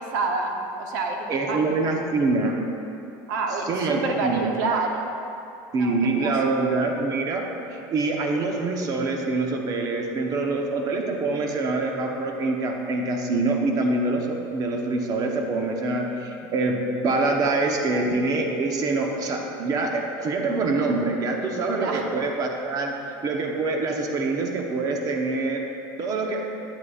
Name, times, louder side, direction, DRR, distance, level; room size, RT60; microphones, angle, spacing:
voice 1, 0.0-1.6 3.3-5.1 5.7-6.3 21.8-22.1, right 3 dB, 85° right, 2 dB, 1.0 m, -28 dB
voice 2, 1.3-2.6 3.5-4.6 5.7-22.9 23.2-25.6 26.0-26.4, right 3 dB, 40° right, 2 dB, 0.9 m, -25 dB
9.4 x 9.3 x 2.5 m, 2.7 s
supercardioid pair, 130°, 10 cm